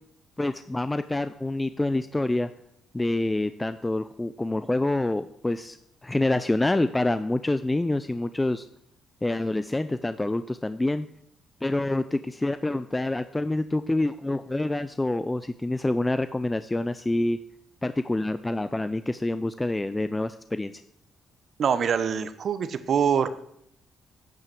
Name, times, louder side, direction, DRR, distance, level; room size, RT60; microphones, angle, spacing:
voice 1, 0.4-2.5 2.9-5.8 6.0-8.7 9.2-11.1 11.6-17.4 17.8-20.7, left 2 dB, 15° left, 12 dB, 0.5 m, -27 dB
voice 2, 21.6-23.3, right 7 dB, 55° right, 12 dB, 1.0 m, -24 dB
9.1 x 8.4 x 7.7 m, 0.73 s
cardioid pair, 90°, 0 cm